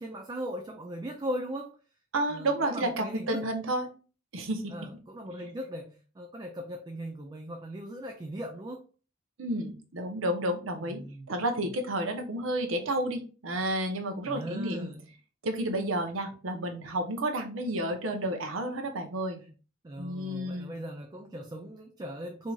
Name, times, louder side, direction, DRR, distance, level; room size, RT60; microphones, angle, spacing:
voice 1, 0.0-1.8 2.3-3.4 4.7-8.8 10.8-11.3 11.6-11.8 14.2-15.0 19.8-22.5, equal, 20° right, 3 dB, 0.4 m, -38 dB
voice 2, 2.1-3.9 4.3-4.6 9.4-14.9 15.4-19.4 20.0-20.8, right 1 dB, 75° right, 5 dB, 0.8 m, -31 dB
4.5 x 2.7 x 2.3 m, 0.36 s
head